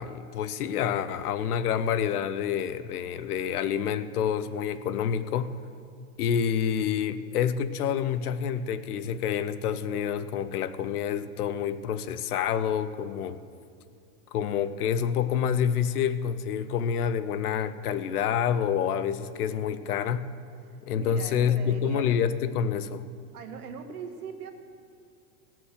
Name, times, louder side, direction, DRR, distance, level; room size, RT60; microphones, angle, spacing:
voice 1, 0.0-5.5 6.2-13.4 14.3-20.3 20.9-23.1, left 8 dB, 80° left, 14 dB, 0.7 m, -28 dB
voice 2, 20.6-22.3 23.3-24.5, right 6 dB, 85° right, 5 dB, 1.5 m, -41 dB
17.0 x 6.1 x 6.4 m, 2.4 s
hypercardioid pair, 120°, 44 cm